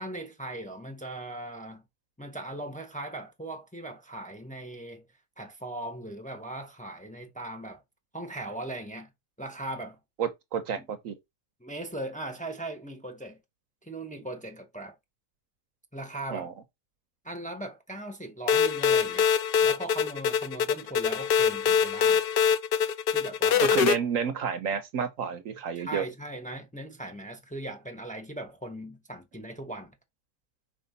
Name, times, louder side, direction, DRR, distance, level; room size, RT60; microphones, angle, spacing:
voice 1, 0.0-1.8 2.2-5.1 5.4-7.8 8.1-9.1 9.4-10.0 10.8-10.9 11.6-13.4 13.8-14.9 15.9-16.5 17.2-19.3 19.6-22.2 23.1-23.9 25.8-29.9, right 1 dB, 5° left, 1.0 m, -39 dB
voice 2, 10.2-11.2 16.3-16.5 23.6-26.0, right 7 dB, 70° right, 1.2 m, -30 dB
sound 1, 18.5-24.0, left 7 dB, 70° left, 0.5 m, -24 dB
5.4 x 4.5 x 4.0 m
omnidirectional pair, 1.5 m